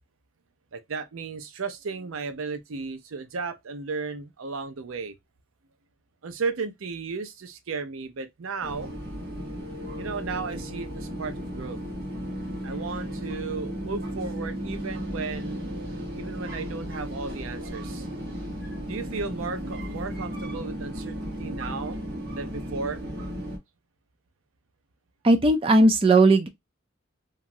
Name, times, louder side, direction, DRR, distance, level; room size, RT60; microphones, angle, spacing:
voice 1, 0.7-5.2 6.2-8.9 10.0-11.8 12.6-15.6 16.1-18.1 18.9-22.0 22.4-23.0, right 4 dB, 80° right, 0.5 m, -34 dB
sound 1, 8.6-23.6, equal, 45° right, 1.0 m, -35 dB
voice 2, 25.2-26.5, right 2 dB, 25° right, 0.5 m, -17 dB
2.9 x 2.4 x 2.6 m
head